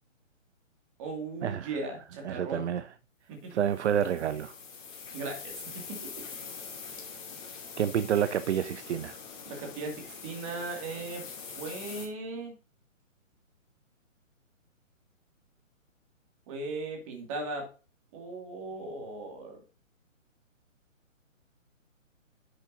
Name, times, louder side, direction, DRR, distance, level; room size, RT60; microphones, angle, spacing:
voice 1, 1.0-2.8 3.3-3.6 5.1-5.6 5.9-6.1 9.5-11.2 11.6-12.5 16.5-17.7 18.1-19.6, right 3 dB, 25° right, 2.2 m, -38 dB
voice 2, 2.2-2.9 3.5-4.5 7.8-9.2, right 9 dB, 60° right, 0.5 m, -28 dB
sound 1, 3.6-12.1, left 6 dB, 35° left, 2.6 m, -44 dB
10.5 x 6.5 x 2.6 m
hypercardioid pair, 155°, 40 cm